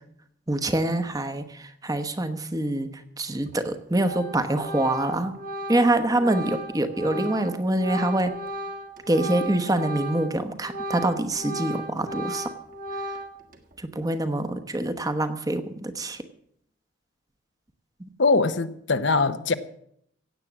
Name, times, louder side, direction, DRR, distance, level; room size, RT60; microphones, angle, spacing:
voice 1, 0.5-2.9 3.2-5.4 5.7-8.4 9.1-12.5 13.8-16.2 18.0-18.1, right 1 dB, 20° right, 9 dB, 1.0 m, -25 dB
Organ, 3.5-3.7 4.0-10.4 10.6-13.5, right 1 dB, 45° right, 1.5 m, -35 dB
voice 2, 18.2-19.5, left 3 dB, 65° left, 11 dB, 0.9 m, -22 dB
16.5 x 8.5 x 7.3 m, 0.70 s
head